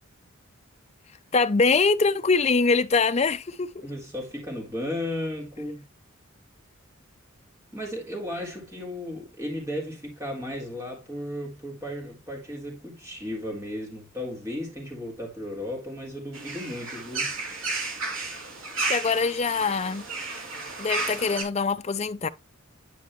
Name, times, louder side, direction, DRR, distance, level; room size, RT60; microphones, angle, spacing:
voice 1, 1.3-3.9 18.8-20.1 20.8-22.3, left 4 dB, 30° left, 0.5 m, -23 dB
voice 2, 3.8-5.8 7.7-17.3, left 1 dB, 15° right, 3.8 m, -35 dB
sound 1, 16.3-21.4, right 3 dB, 75° right, 2.9 m, -32 dB
10.5 x 5.1 x 3.1 m
head